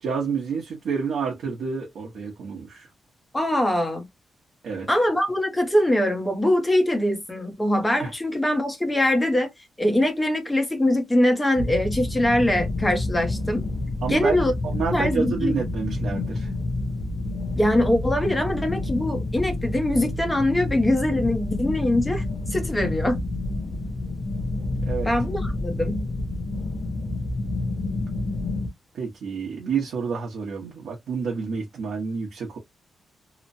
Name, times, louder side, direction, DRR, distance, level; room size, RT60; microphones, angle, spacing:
voice 1, 0.0-2.9 4.6-4.9 8.0-8.1 14.0-14.4 14.6-16.5 24.8-25.1 28.9-32.6, right 5 dB, 80° right, 0.8 m, -29 dB
voice 2, 3.3-4.0 4.9-9.5 9.8-13.6 14.1-14.5 14.9-15.5 17.6-22.2 22.5-23.2 25.0-26.1, left 1 dB, 10° left, 0.8 m, -22 dB
sound 1, 11.6-28.7, left 2 dB, 45° left, 0.5 m, -29 dB
2.9 x 2.1 x 2.6 m
wide cardioid pair, 145°, 0 cm